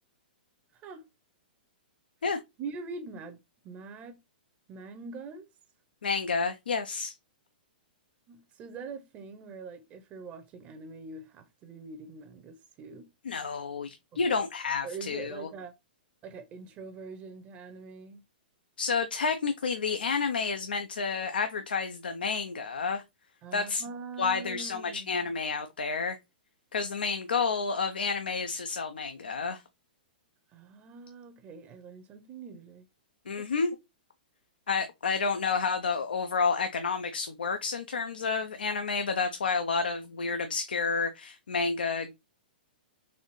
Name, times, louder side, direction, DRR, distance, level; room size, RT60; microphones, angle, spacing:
voice 1, 0.7-1.0 2.6-4.2 4.7-5.5 8.3-13.1 14.1-14.3 14.8-15.7 16.2-18.2 23.4-25.3 30.5-32.9 33.4-33.5, right 4 dB, 30° right, 0.6 m, -43 dB
voice 2, 6.0-7.1 13.3-15.5 18.8-23.0 23.5-23.8 24.2-26.2 26.7-29.6 33.3-33.8 34.7-42.1, left 5 dB, 85° left, 0.5 m, -30 dB
4.1 x 2.6 x 3.0 m
hypercardioid pair, 125°, 5 cm